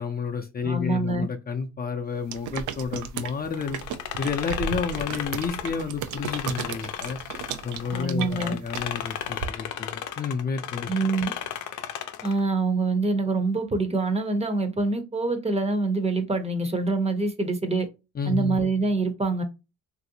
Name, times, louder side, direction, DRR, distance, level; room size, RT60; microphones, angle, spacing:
voice 1, 0.0-3.8 4.2-7.2 7.6-10.9 18.2-18.6, left 5 dB, 30° left, 0.5 m, -30 dB
voice 2, 0.6-1.3 7.9-8.6 10.9-11.3 12.2-17.9 18.3-19.4, right 3 dB, 20° right, 0.7 m, -25 dB
sound 1, 2.3-9.5, right 8 dB, 80° right, 0.5 m, -35 dB
sound 2, 3.5-8.0 8.3-12.4, left 10 dB, 80° left, 0.5 m, -34 dB
3.0 x 2.6 x 2.8 m
cardioid pair, 90°, 30 cm